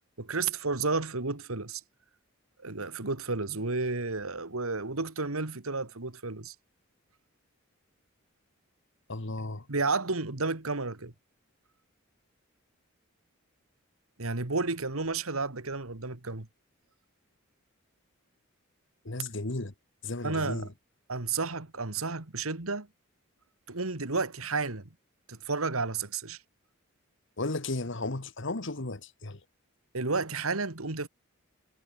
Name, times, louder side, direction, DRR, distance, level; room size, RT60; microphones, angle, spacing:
voice 1, 0.2-1.8 2.6-6.5 9.7-11.1 14.2-16.5 20.2-20.7 21.1-22.9 23.7-24.9 25.3-26.4 29.9-31.1, right 3 dB, 90° right, 2.1 m, -32 dB
voice 2, 9.1-9.6 19.0-19.7 20.0-20.7 27.4-29.4, left 2 dB, 60° left, 1.6 m, -34 dB
head